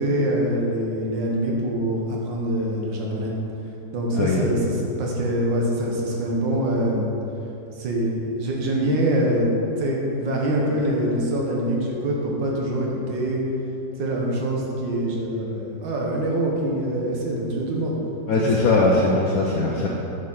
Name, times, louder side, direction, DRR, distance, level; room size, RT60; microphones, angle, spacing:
voice 1, 0.0-3.3 3.9-7.1 7.7-9.5 9.8-13.4 14.0-18.0 18.4-18.7, right 1 dB, 80° right, -2 dB, 1.9 m, -24 dB
voice 2, 4.1-4.5 18.3-19.9, left 2 dB, 60° left, -2 dB, 1.0 m, -20 dB
8.1 x 5.6 x 5.6 m, 2.9 s
omnidirectional pair, 2.0 m